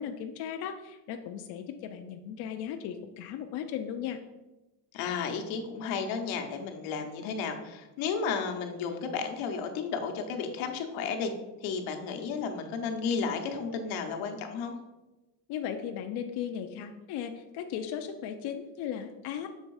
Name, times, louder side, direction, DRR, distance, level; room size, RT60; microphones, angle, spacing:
voice 1, 0.0-4.2 15.5-19.5, left 8 dB, 60° left, 5 dB, 0.5 m, -36 dB
voice 2, 4.9-11.3 11.6-14.8, left 5 dB, 85° left, 4 dB, 1.0 m, -33 dB
6.6 x 3.5 x 4.7 m, 1.1 s
cardioid pair, 155°, 46 cm